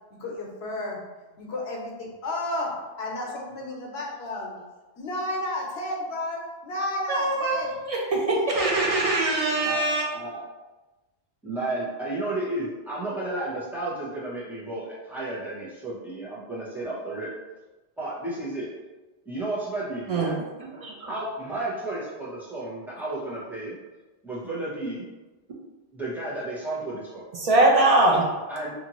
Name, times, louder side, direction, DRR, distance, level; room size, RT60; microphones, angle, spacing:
voice 1, 0.2-1.0 1.4-4.6 5.0-7.7 8.2-8.6, left 1 dB, 80° left, -2 dB, 0.9 m, -32 dB
voice 2, 3.4-3.8 9.6-10.4 11.4-17.3 18.0-18.7 19.3-20.4 21.1-23.7 24.2-25.1 25.9-27.2 27.5-27.7 28.5-28.7, right 2 dB, ahead, -8 dB, 0.7 m, -32 dB
voice 3, 7.1-10.1 20.1-21.1 27.3-28.3, right 2 dB, 55° right, -2 dB, 0.4 m, -23 dB
2.7 x 2.5 x 2.9 m, 1.2 s
omnidirectional pair, 1.1 m